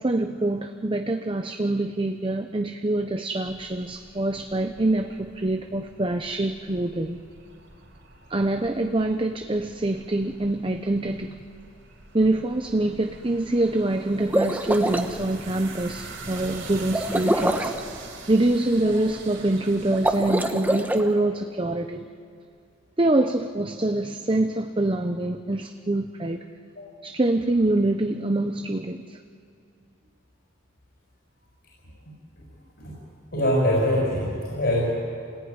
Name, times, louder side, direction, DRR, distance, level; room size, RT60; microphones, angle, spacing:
voice 1, 0.0-7.2 8.3-11.4 12.1-17.8 18.3-22.1 23.0-26.4 27.0-29.2, right 2 dB, 25° right, 6 dB, 0.7 m, -25 dB
sound 1, 3.5-20.2, right 3 dB, 70° right, 4.9 m, -44 dB
sound 2, 14.2-15.1 16.9-17.8 19.9-21.0, right 1 dB, 10° right, 1.1 m, -24 dB
voice 2, 33.3-34.9, equal, 55° left, -4 dB, 6.2 m, -23 dB
28.0 x 19.5 x 9.6 m, 2.4 s
head